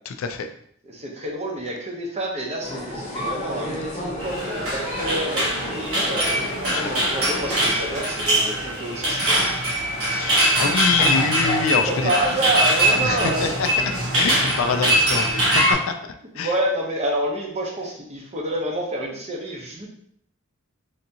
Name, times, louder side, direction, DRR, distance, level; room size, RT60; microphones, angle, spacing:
voice 1, 0.1-0.5 6.7-6.9 10.0-12.1 13.0-13.7 14.1-16.5, left 5 dB, 70° left, 7 dB, 0.3 m, -25 dB
voice 2, 0.8-6.3 6.6-9.4 11.7-13.6 16.3-19.9, right 1 dB, 30° right, -1 dB, 0.7 m, -28 dB
sound 1, 2.6-8.0, left 1 dB, 35° left, 0.8 m, -32 dB
sound 2, 4.2-15.7, right 1 dB, 85° right, 1.1 m, -22 dB
3.4 x 2.7 x 2.7 m, 0.67 s
head